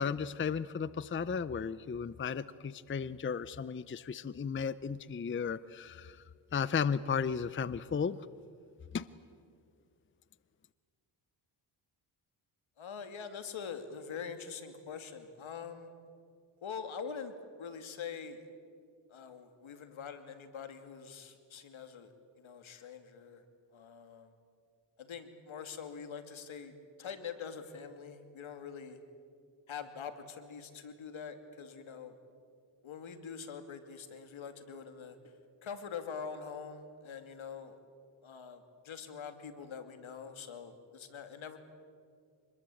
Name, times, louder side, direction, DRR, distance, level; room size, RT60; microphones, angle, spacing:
voice 1, 0.0-6.2 6.5-8.2 8.9-9.1, left 6 dB, 25° left, 17 dB, 0.6 m, -34 dB
voice 2, 12.8-15.9 16.6-18.5 19.1-23.4 23.7-24.3 25.0-29.0 29.7-32.2 32.8-35.3 35.6-37.8 38.2-41.6, left 6 dB, 70° left, 8 dB, 2.7 m, -44 dB
25.5 x 21.0 x 8.6 m, 2.2 s
cardioid pair, 75°, 49 cm